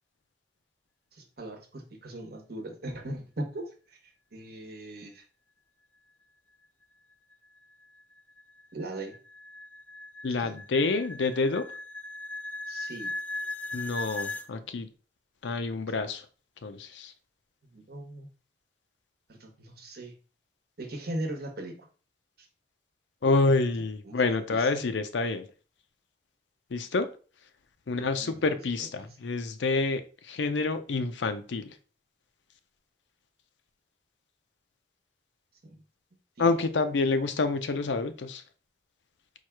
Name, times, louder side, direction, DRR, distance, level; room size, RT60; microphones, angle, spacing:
voice 1, 1.1-4.0 4.3-5.2 8.7-9.2 10.4-10.6 12.7-13.1 17.6-18.3 19.3-20.1 20.8-21.9 24.0-24.7 27.9-28.4 35.6-35.8 36.4-36.6, right 1 dB, 60° right, 1.1 m, -39 dB
sound 1, 7.3-14.5, left 2 dB, 10° left, 0.3 m, -39 dB
voice 2, 10.2-11.7 13.7-14.9 15.4-16.2 16.6-17.1 23.2-25.5 26.7-27.1 27.9-31.7 36.4-38.4, left 3 dB, 90° left, 0.5 m, -28 dB
4.6 x 2.3 x 4.5 m
head